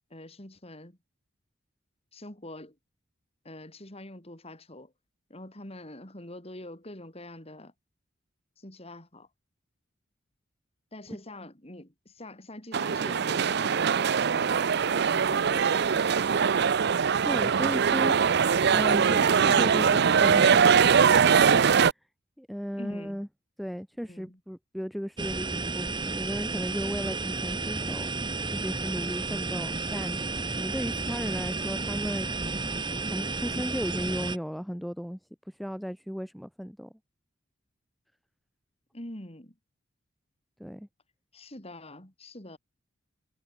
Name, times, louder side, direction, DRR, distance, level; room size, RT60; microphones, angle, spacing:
voice 1, 0.1-1.0 2.1-2.8 3.4-4.9 5.3-7.7 8.6-9.3 10.9-14.0 14.3-16.2 22.7-23.2 24.1-24.4 32.9-33.2 38.9-39.5 41.3-42.6, left 1 dB, 30° left, 3.9 m, -45 dB
sound 1, 12.7-21.9, right 6 dB, 55° right, 0.5 m, -22 dB
voice 2, 17.2-18.4 18.7-21.2 22.4-23.3 23.6-28.1 28.5-30.2 30.6-32.3 33.0-35.2 35.6-36.9 40.6-40.9, equal, ahead, 1.7 m, -35 dB
sound 2, 25.2-34.4, right 3 dB, 25° right, 2.3 m, -32 dB
head